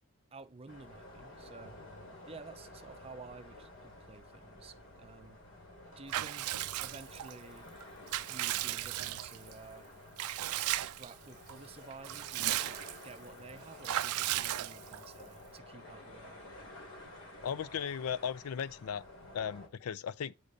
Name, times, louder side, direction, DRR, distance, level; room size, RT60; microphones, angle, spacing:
voice 1, 0.3-1.8 2.3-5.4 6.0-7.7 8.3-9.9 10.5-16.4, right 4 dB, 25° right, 0.5 m, -52 dB
sound 1, 0.7-19.7, left 1 dB, 60° left, 2.6 m, -52 dB
Water / Bathtub (filling or washing) / Liquid, 6.1-7.3 7.8-9.5 10.2-11.1 11.5-11.6 11.9-13.1 13.8-15.1, right 14 dB, 85° right, 0.4 m, -35 dB
voice 2, 17.4-19.0 19.3-20.3, left 7 dB, 80° left, 0.4 m, -36 dB
8.4 x 5.1 x 4.0 m
head